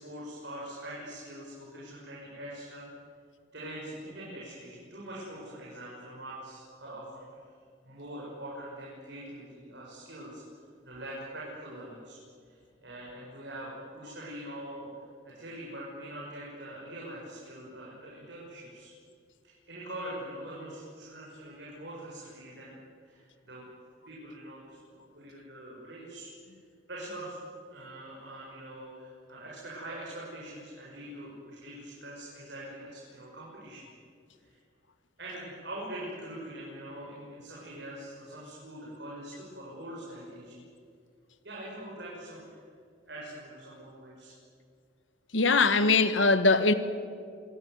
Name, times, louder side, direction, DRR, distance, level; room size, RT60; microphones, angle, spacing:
voice 1, 0.0-2.9 3.5-7.4 7.8-10.4 10.8-12.2 12.4-14.9 15.2-18.9 19.4-22.8 23.0-23.6 24.1-26.6 26.9-27.4 27.7-33.9 34.4-34.6 35.2-40.6 41.4-42.6 43.1-44.3, right 1 dB, 60° right, 7.0 m, -43 dB
voice 2, 45.3-46.7, left 3 dB, 75° left, 1.5 m, -22 dB
27.0 x 18.0 x 9.6 m
head